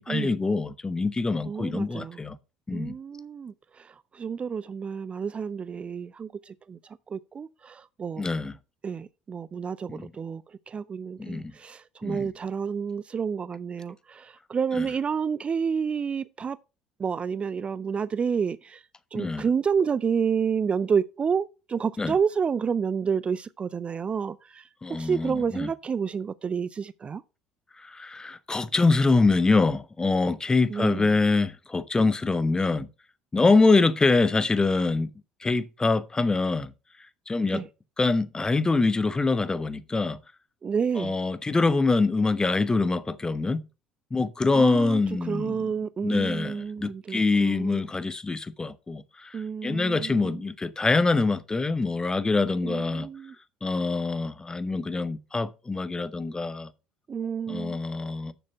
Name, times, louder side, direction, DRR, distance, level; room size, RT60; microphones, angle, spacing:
voice 1, 0.0-2.4 2.7-2.9 8.2-8.6 9.9-10.1 11.2-11.5 12.0-12.3 14.7-14.9 19.1-19.5 22.0-22.2 24.8-25.7 27.8-32.9 33.3-35.1 35.4-36.7 37.3-37.7 38.0-40.2 41.0-43.7 44.1-45.7 46.0-53.1 53.6-56.7 57.5-58.3, left 3 dB, 20° left, 0.8 m, -25 dB
voice 2, 1.5-2.2 2.7-6.8 7.1-8.3 8.8-16.6 17.0-18.8 19.1-24.6 25.0-27.2 30.7-31.1 37.5-37.6 40.6-41.1 44.5-45.0 45.3-47.9 49.3-50.4 52.6-53.3 57.1-57.8, right 6 dB, 30° right, 0.4 m, -29 dB
6.9 x 6.5 x 5.5 m
figure-of-eight pair, 60°, 4 cm